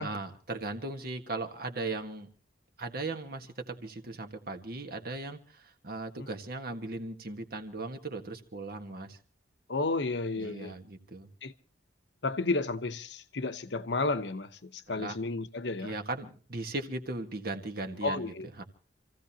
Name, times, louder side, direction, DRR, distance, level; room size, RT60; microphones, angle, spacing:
voice 1, 0.0-2.3 2.8-9.2 10.4-11.3 14.9-15.2 15.8-18.6, right 2 dB, 55° right, 1.6 m, -38 dB
voice 2, 9.7-10.7 11.4-11.5 12.2-15.9 18.0-18.5, left 3 dB, 65° left, 0.9 m, -32 dB
28.0 x 15.5 x 2.9 m
head